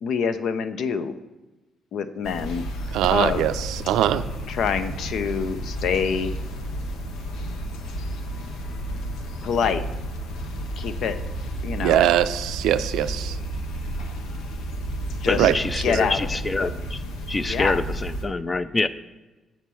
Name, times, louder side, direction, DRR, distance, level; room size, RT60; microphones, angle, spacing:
voice 1, 0.0-1.1 1.9-2.7 3.1-3.5 4.5-6.3 9.4-9.8 10.8-11.2 11.6-12.0 15.2-15.5 15.8-16.3 16.6-16.7 17.4-17.8, left 6 dB, 70° left, 11 dB, 0.6 m, -26 dB
sound 1, 2.2-18.2, right 1 dB, 90° left, 0.9 m, -32 dB
voice 2, 2.9-4.3 11.8-13.4 15.4-15.6, right 12 dB, 90° right, 12 dB, 0.4 m, -21 dB
voice 3, 15.3-17.0 17.3-18.9, left 3 dB, 25° left, 14 dB, 0.5 m, -26 dB
7.2 x 4.5 x 6.9 m, 1.2 s
cardioid pair, 90°, 0 cm